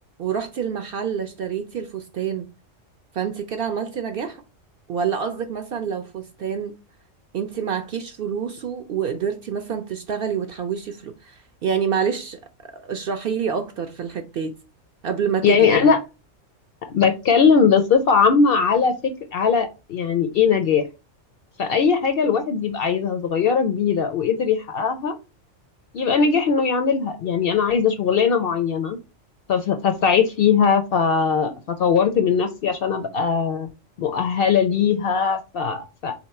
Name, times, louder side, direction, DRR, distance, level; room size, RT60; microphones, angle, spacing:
voice 1, 0.2-2.5 3.1-4.4 4.9-6.8 7.3-12.4 12.7-14.6 15.0-15.9, right 7 dB, 60° right, 0.6 m, -27 dB
voice 2, 15.4-16.0 16.9-20.8 21.6-25.2 25.9-29.0 29.5-33.7 34.0-36.1, left 6 dB, 60° left, 0.6 m, -20 dB
3.8 x 2.9 x 4.2 m
omnidirectional pair, 1.3 m